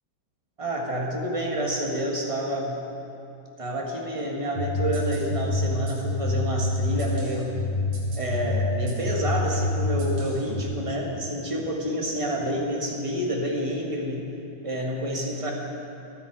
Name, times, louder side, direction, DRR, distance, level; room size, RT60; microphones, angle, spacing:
voice 1, 0.6-2.8 3.6-7.6 8.1-14.3 14.6-15.5, equal, 15° right, -1 dB, 1.3 m, -28 dB
sound 1, 4.6-10.6, left 2 dB, 50° right, 3.4 m, -27 dB
28.0 x 9.9 x 4.8 m, 2.9 s
omnidirectional pair, 3.4 m